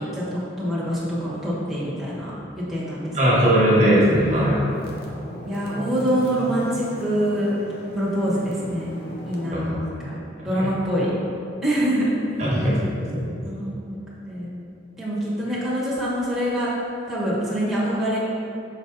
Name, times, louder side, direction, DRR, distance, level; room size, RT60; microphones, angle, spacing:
voice 1, 0.0-2.3 2.7-3.2 5.5-7.6 7.9-11.1 11.6-12.1 13.5-14.0 14.3-14.5 15.0-16.7 17.1-18.2, equal, ahead, -10 dB, 1.2 m, -25 dB
voice 2, 3.1-4.6 9.5-9.8 10.4-10.7 12.4-13.3, equal, 35° right, -6 dB, 1.3 m, -20 dB
sound 1, 3.2-9.5, left 1 dB, 50° left, 0.8 m, -38 dB
6.2 x 4.1 x 3.9 m, 2.7 s
head